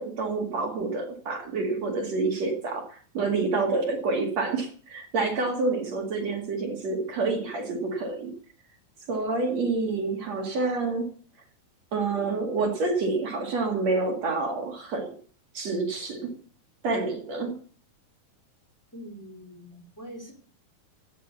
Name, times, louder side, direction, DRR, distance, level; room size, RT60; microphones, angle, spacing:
voice 1, 0.0-8.3 9.1-11.1 11.9-15.1 15.5-16.3 16.8-17.5, right 3 dB, 50° right, 3 dB, 3.2 m, -28 dB
voice 2, 18.9-20.3, equal, 5° left, 1 dB, 4.0 m, -43 dB
16.5 x 9.0 x 7.0 m, 0.43 s
omnidirectional pair, 4.0 m